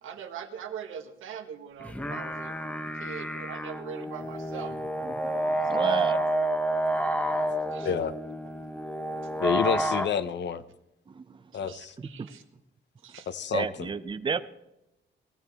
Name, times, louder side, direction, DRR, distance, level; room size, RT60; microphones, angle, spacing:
voice 1, 0.0-2.6 3.0-4.7 5.7-6.2 7.7-7.9 11.7-12.4 13.0-13.3, right 7 dB, 85° right, 5 dB, 1.7 m, -41 dB
sound 1, 1.8-10.1, right 1 dB, 5° left, 0.9 m, -29 dB
voice 2, 5.0-6.2 11.1-11.4 12.0-12.3 13.5-14.4, right 5 dB, 25° right, 11 dB, 0.6 m, -32 dB
voice 3, 9.4-10.6 11.5-11.9 13.3-13.9, left 7 dB, 60° left, 12 dB, 0.8 m, -29 dB
19.5 x 15.0 x 3.6 m, 0.89 s
cardioid pair, 135°, 20 cm